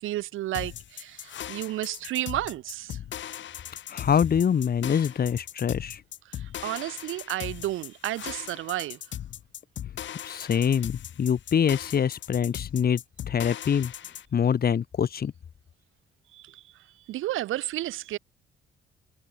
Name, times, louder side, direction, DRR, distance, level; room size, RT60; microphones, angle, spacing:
voice 1, 0.0-3.0 6.3-9.0 16.3-16.6 17.1-18.2, right 15 dB, 90° right, 4.3 m, -32 dB
sound 1, 0.5-14.3, left 11 dB, 70° left, 6.2 m, -39 dB
voice 2, 3.9-6.0 10.2-13.0 13.3-13.9 14.3-15.3, left 8 dB, 50° left, 2.3 m, -24 dB
cardioid pair, 90°, 20 cm